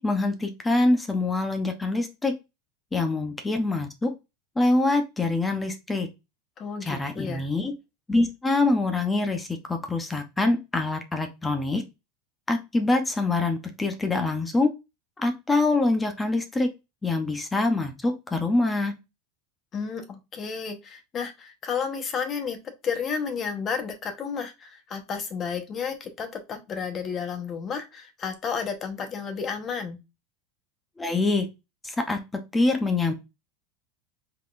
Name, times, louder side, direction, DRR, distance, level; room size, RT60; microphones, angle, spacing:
voice 1, 0.0-2.3 2.9-4.1 4.6-6.1 6.8-7.7 8.1-11.8 12.5-14.7 15.2-16.7 17.0-18.9 31.0-31.5 31.8-32.2 32.5-33.1, left 2 dB, 10° left, 6 dB, 0.8 m, -25 dB
voice 2, 6.6-7.5 19.7-22.6 22.8-30.0, left 6 dB, 30° left, 6 dB, 1.0 m, -32 dB
4.5 x 3.8 x 2.5 m, 0.24 s
supercardioid pair, 140°, 0 cm